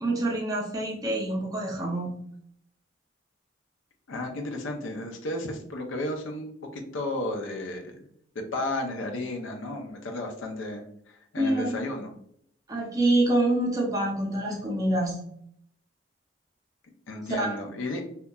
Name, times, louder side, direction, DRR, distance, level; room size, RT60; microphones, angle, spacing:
voice 1, 0.0-2.2 11.4-11.9 12.7-15.2 17.4-17.5, right 1 dB, 20° right, -2 dB, 0.5 m, -26 dB
voice 2, 4.1-8.0 8.3-12.1 17.1-18.0, left 2 dB, 80° left, 3 dB, 0.5 m, -33 dB
2.8 x 2.2 x 2.2 m, 0.67 s
head